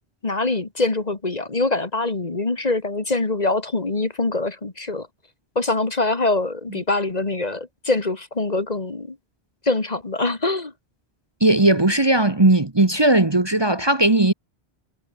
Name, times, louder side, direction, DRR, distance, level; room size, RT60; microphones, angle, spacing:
voice 1, 0.2-5.1 5.6-9.2 9.7-10.7, left 2 dB, 40° left, 1.8 m, -24 dB
voice 2, 11.4-14.3, right 2 dB, 25° right, 1.3 m, -17 dB
omnidirectional pair, 1.1 m